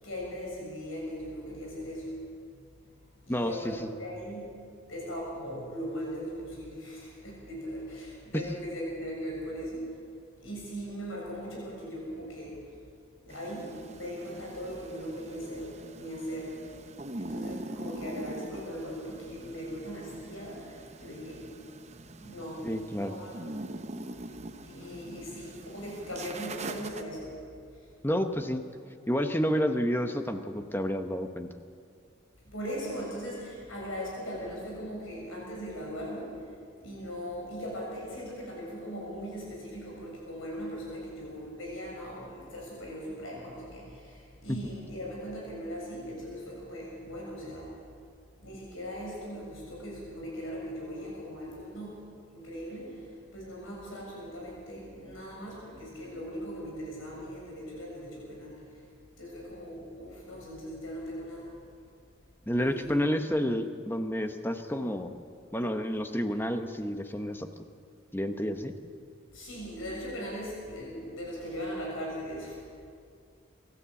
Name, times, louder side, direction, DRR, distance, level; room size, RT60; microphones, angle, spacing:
voice 1, 0.0-2.1 3.2-4.5 4.9-9.9 10.4-12.6 13.2-16.5 17.2-21.4 22.2-22.7 22.9-23.6 24.6-27.3 32.5-36.3 36.8-47.7 48.4-52.0 52.3-53.0 53.3-58.6 59.2-61.5 62.5-63.4 69.3-72.6, equal, 90° left, -3 dB, 7.1 m, -39 dB
voice 2, 3.3-3.7 22.6-23.1 28.0-28.6 29.1-31.5 44.5-44.6 62.5-65.1 65.5-67.5 68.1-68.7, equal, 10° left, 7 dB, 0.9 m, -30 dB
sound 1, 13.3-27.0, right 2 dB, 35° right, 0.8 m, -43 dB
24.5 x 13.0 x 8.3 m, 2.3 s
head